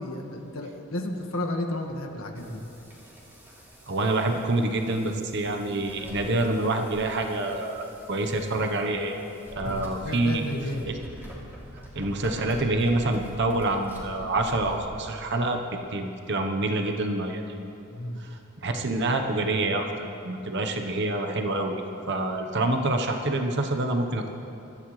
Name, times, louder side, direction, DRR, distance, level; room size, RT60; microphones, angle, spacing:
voice 1, 0.0-2.6 9.6-10.9 17.9-18.2, left 1 dB, 75° left, 1 dB, 1.6 m, -33 dB
sound 1, 2.3-14.9, equal, 10° right, 2.9 m, -45 dB
voice 2, 3.9-9.2 9.6-10.4 11.9-15.6 15.9-17.6 18.2-19.9 20.2-21.8 22.1-24.3, right 2 dB, 55° right, 4 dB, 1.0 m, -27 dB
24.0 x 14.0 x 3.2 m, 2.9 s
head